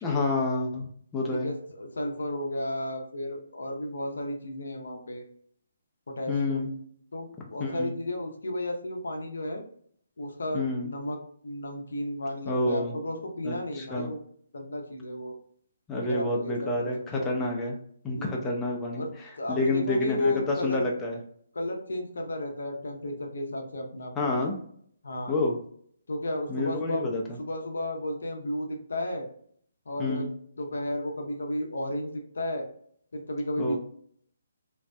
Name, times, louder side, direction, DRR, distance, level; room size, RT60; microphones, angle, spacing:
voice 1, 0.0-1.5 6.3-6.7 7.6-7.9 10.5-10.9 12.4-12.9 13.4-14.1 15.9-17.8 18.0-19.1 19.5-21.2 24.2-24.5 25.3-25.6 26.5-27.2 30.0-30.3 33.6-33.8, left 2 dB, 10° left, -1 dB, 0.4 m, -28 dB
voice 2, 1.3-5.2 6.1-6.8 7.1-9.6 10.2-11.2 11.4-14.2 14.5-15.3 15.9-17.3 18.1-18.4 18.9-19.1 19.4-20.9 21.5-24.5 25.0-25.3 26.1-27.1 27.4-29.3 29.9-30.3 30.6-32.7 33.1-33.8, left 1 dB, 65° left, 3 dB, 0.5 m, -33 dB
2.6 x 2.2 x 2.2 m, 0.62 s
figure-of-eight pair, 140°, 0 cm